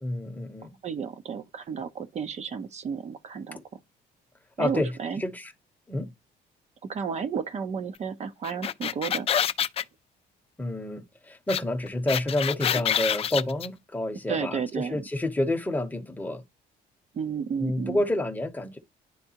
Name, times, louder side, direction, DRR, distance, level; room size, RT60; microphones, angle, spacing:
voice 1, 0.0-0.8 3.5-3.6 4.6-5.5 5.9-6.1 10.6-16.4 17.6-18.8, left 1 dB, 10° left, 0.9 m, -29 dB
voice 2, 0.8-3.6 4.6-5.2 6.8-9.3 14.3-15.0 17.1-18.0, right 6 dB, 40° right, 0.7 m, -32 dB
sound 1, 8.4-9.8 11.5-11.6 11.9-13.7, left 9 dB, 35° left, 0.3 m, -26 dB
10.0 x 3.4 x 2.8 m
cardioid pair, 110°, 17 cm